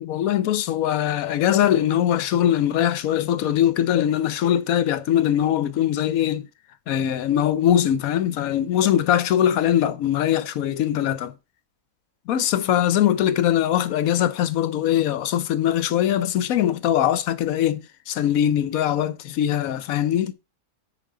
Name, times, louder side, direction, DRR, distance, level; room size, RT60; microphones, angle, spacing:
voice 1, 0.0-6.5 6.9-11.3 12.3-20.3, left 11 dB, 70° left, 1.1 m, -21 dB
10.0 x 4.3 x 3.7 m
omnidirectional pair, 1.6 m